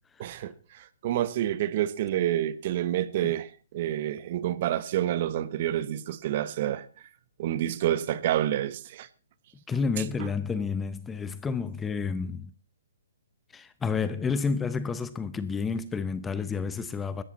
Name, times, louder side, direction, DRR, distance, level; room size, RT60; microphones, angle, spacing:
voice 1, 0.2-6.8 7.4-9.1 10.2-10.3, right 12 dB, 40° right, 1.2 m, -28 dB
voice 2, 9.7-12.5 13.5-17.2, left 5 dB, 10° left, 0.7 m, -30 dB
18.0 x 13.5 x 4.3 m
hypercardioid pair, 155°, 0 cm